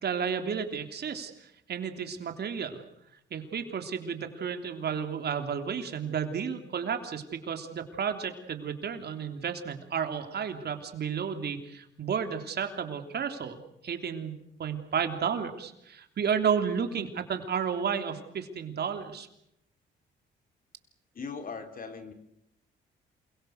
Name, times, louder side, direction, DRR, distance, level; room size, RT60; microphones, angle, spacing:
voice 1, 0.0-2.8 3.3-19.3, right 7 dB, 55° right, 6 dB, 3.5 m, -32 dB
voice 2, 21.2-22.1, left 5 dB, 45° left, 7 dB, 3.7 m, -39 dB
28.0 x 23.0 x 6.6 m, 0.78 s
cardioid pair, 90°, 20 cm